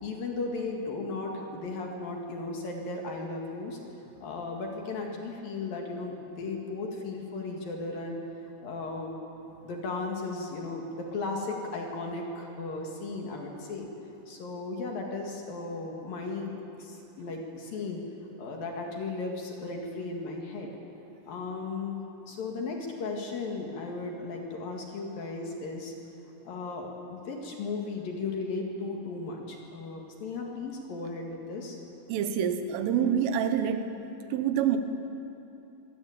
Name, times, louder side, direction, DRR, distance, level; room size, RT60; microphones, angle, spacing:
voice 1, 0.0-3.8 4.2-9.2 9.6-13.9 14.3-16.5 16.8-18.0 18.4-20.7 21.3-22.0 22.3-25.9 26.4-31.8, left 3 dB, 55° left, 1 dB, 3.1 m, -36 dB
voice 2, 32.1-33.9 34.3-34.8, right 8 dB, 85° right, 8 dB, 3.8 m, -26 dB
24.0 x 16.0 x 8.9 m, 2.9 s
omnidirectional pair, 5.6 m